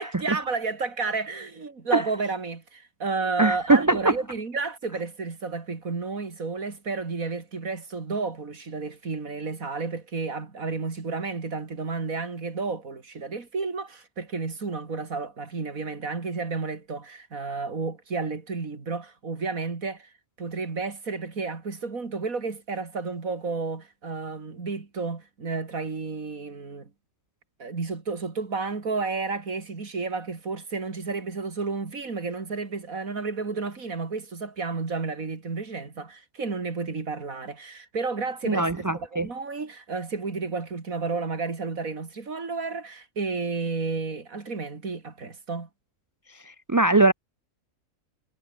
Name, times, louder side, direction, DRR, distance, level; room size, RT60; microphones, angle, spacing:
voice 1, 0.0-20.1 20.4-26.9 27.6-45.7, right 4 dB, 75° right, 3.2 m, -31 dB
voice 2, 3.4-4.1 38.4-39.3 46.5-47.1, right 2 dB, 20° right, 0.5 m, -21 dB
omnidirectional pair, 1.5 m